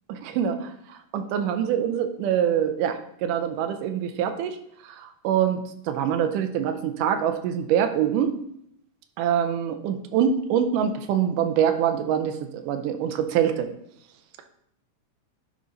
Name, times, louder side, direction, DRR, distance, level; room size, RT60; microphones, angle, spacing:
voice 1, 0.1-4.6 4.8-8.4 9.2-13.7, right 9 dB, 90° right, 8 dB, 2.2 m, -25 dB
10.5 x 3.8 x 3.9 m, 0.73 s
omnidirectional pair, 3.7 m